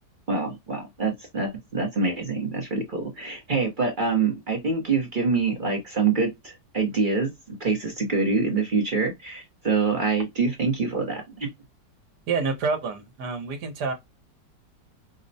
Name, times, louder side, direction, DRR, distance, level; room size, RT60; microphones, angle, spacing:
voice 1, 0.3-11.5, right 4 dB, 40° right, 0.8 m, -25 dB
voice 2, 12.3-13.9, right 4 dB, 75° right, 1.5 m, -27 dB
5.2 x 2.0 x 2.6 m
omnidirectional pair, 1.8 m